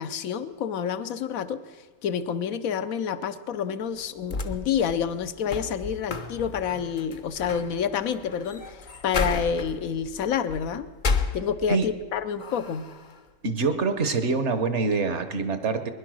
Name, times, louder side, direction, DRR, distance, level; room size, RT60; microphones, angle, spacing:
voice 1, 0.0-1.6 2.0-8.8 9.0-10.9 11.3-12.9, left 7 dB, 75° left, 12 dB, 1.2 m, -28 dB
sick stomach, 4.0-12.0 12.4-13.2, left 4 dB, 40° left, 0.8 m, -33 dB
voice 2, 13.4-15.9, right 4 dB, 55° right, 10 dB, 1.2 m, -25 dB
20.5 x 11.0 x 6.2 m, 1.4 s
omnidirectional pair, 1.5 m